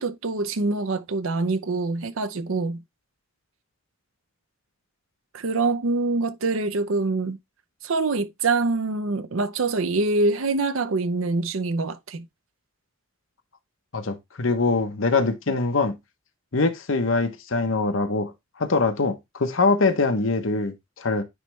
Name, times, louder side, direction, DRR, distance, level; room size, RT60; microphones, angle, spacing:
voice 1, 0.0-2.8 5.3-7.4 7.8-12.3, right 3 dB, 80° right, 0.7 m, -25 dB
voice 2, 13.9-16.0 16.5-18.3 18.6-21.2, left 3 dB, 70° left, 1.0 m, -23 dB
9.6 x 3.2 x 3.2 m
head